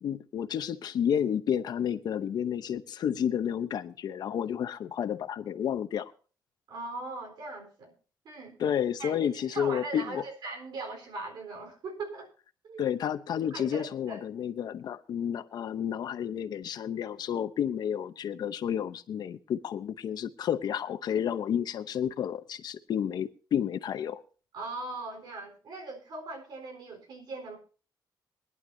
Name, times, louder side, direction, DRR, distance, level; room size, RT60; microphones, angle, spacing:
voice 1, 0.0-6.1 8.6-10.2 12.8-24.2, left 9 dB, 70° left, 0.8 m, -31 dB
voice 2, 6.7-7.9 8.2-8.6 9.0-12.3 12.6-12.9 13.5-14.2 24.5-27.6, right 3 dB, 80° right, 4.0 m, -40 dB
22.0 x 11.0 x 2.7 m
wide cardioid pair, 170°, 7 cm